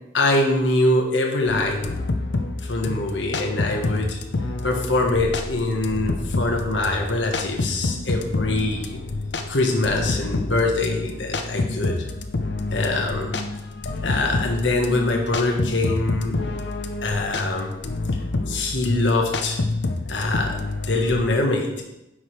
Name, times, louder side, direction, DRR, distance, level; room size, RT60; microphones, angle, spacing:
voice 1, 0.1-2.0 2.6-4.2 4.6-9.0 9.5-12.1 12.7-13.3 14.0-16.4 17.0-17.7 18.4-19.6 20.1-20.6 20.9-21.8, left 2 dB, 85° left, 1 dB, 1.2 m, -23 dB
sound 1, 1.5-21.2, left 2 dB, 70° left, 0.7 m, -28 dB
10.0 x 6.3 x 3.2 m, 0.91 s
head